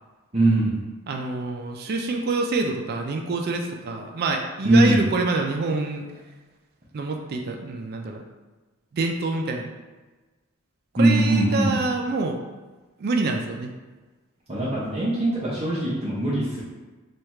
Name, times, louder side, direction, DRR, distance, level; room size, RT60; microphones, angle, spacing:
voice 1, 0.3-0.8 4.6-5.0 11.0-11.7 14.5-16.6, right 1 dB, 30° right, -8 dB, 0.7 m, -21 dB
voice 2, 1.1-6.1 6.9-8.2 8.9-9.7 10.9-12.4 13.0-13.7, right 3 dB, 45° right, 2 dB, 0.3 m, -26 dB
3.2 x 2.3 x 4.2 m, 1.3 s
head